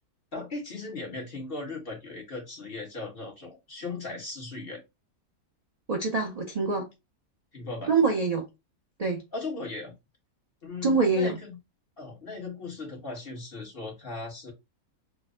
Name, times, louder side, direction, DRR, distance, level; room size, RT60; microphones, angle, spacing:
voice 1, 0.3-4.8 7.5-7.9 9.3-9.9 10.6-11.6 12.0-14.5, left 3 dB, 40° left, 1.4 m, -37 dB
voice 2, 5.9-6.9 7.9-8.4 9.0-9.2 10.8-11.4, right 4 dB, 50° right, 0.4 m, -25 dB
3.9 x 2.1 x 3.6 m
omnidirectional pair, 1.6 m